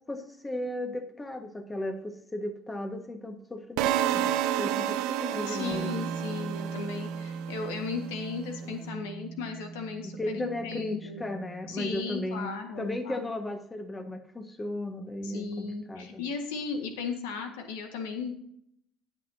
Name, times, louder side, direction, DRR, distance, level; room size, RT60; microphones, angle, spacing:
voice 1, 0.1-6.1 8.6-9.0 10.0-12.5 12.8-16.3, left 1 dB, 20° left, 6 dB, 1.6 m, -36 dB
sound 1, 3.8-7.8, right 11 dB, 75° right, 0.7 m, -30 dB
voice 2, 5.5-11.3 11.7-13.3 15.2-18.3, left 5 dB, 85° left, 5 dB, 1.6 m, -36 dB
Bass guitar, 5.7-12.0, right 5 dB, 40° right, 0.4 m, -40 dB
18.5 x 6.2 x 2.8 m, 0.70 s
hypercardioid pair, 75°, 0 cm